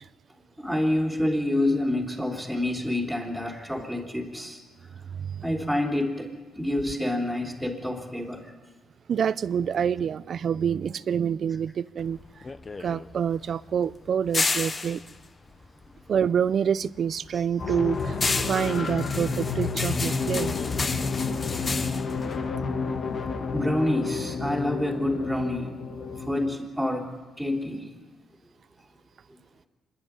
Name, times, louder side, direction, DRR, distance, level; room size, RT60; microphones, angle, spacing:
voice 1, 0.6-4.6 5.4-8.5 17.3-17.4 21.7-21.9 23.5-28.0, left 1 dB, ahead, 3.6 m, -28 dB
voice 2, 5.1-5.4 9.1-12.2 12.8-15.0 16.1-18.2 18.5-20.6, right 8 dB, 55° right, 0.6 m, -27 dB
sound 1, 12.0-16.5 16.8-23.3, left 3 dB, 30° left, 1.0 m, -32 dB
sound 2, 17.6-26.5, left 4 dB, 50° left, 1.7 m, -30 dB
26.0 x 11.0 x 9.7 m
cardioid pair, 90°, 0 cm